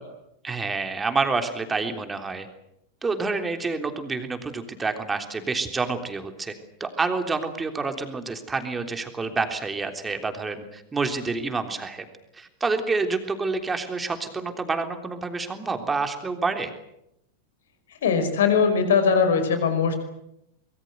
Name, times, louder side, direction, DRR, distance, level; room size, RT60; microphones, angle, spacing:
voice 1, 0.4-2.5 3.0-6.5 6.8-12.0 12.4-16.7, right 4 dB, 15° right, 6 dB, 3.4 m, -28 dB
voice 2, 18.0-20.0, left 6 dB, 60° left, 9 dB, 5.3 m, -20 dB
25.0 x 22.5 x 8.1 m, 0.82 s
figure-of-eight pair, 90°, 0 cm